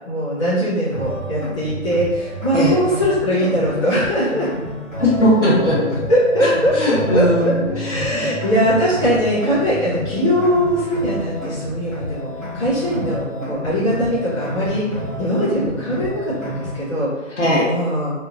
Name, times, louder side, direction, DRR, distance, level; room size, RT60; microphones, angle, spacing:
voice 1, 0.1-4.5 6.1-12.3 12.5-14.9 15.2-17.3 17.7-18.1, equal, 25° left, -12 dB, 1.0 m, -20 dB
sound 1, 0.9-16.9, equal, 85° left, 1.4 m, -30 dB
voice 2, 5.0-5.8 6.4-8.3 17.4-17.7, equal, 65° left, -7 dB, 1.2 m, -18 dB
2.8 x 2.4 x 2.6 m, 1.2 s
figure-of-eight pair, 150°, 39 cm